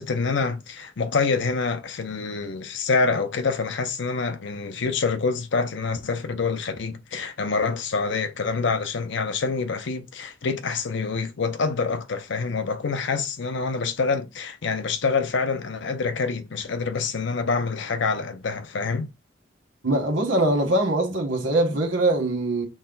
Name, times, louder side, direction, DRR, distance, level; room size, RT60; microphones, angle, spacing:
voice 1, 0.0-19.1, left 4 dB, 65° left, 0.6 m, -26 dB
voice 2, 19.8-22.6, right 1 dB, 75° right, 1.4 m, -22 dB
6.2 x 2.2 x 3.8 m
head